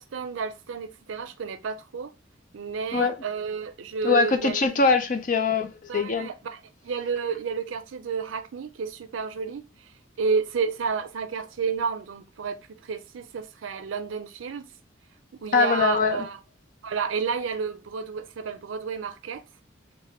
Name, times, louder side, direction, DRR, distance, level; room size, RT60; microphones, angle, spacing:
voice 1, 0.0-2.1 2.5-4.6 5.9-9.9 10.2-14.7 15.4-16.4 16.8-19.4, right 5 dB, 85° right, 0.4 m, -31 dB
voice 2, 4.0-6.3 15.5-16.2, left 4 dB, 45° left, 0.5 m, -22 dB
3.2 x 2.1 x 4.2 m
head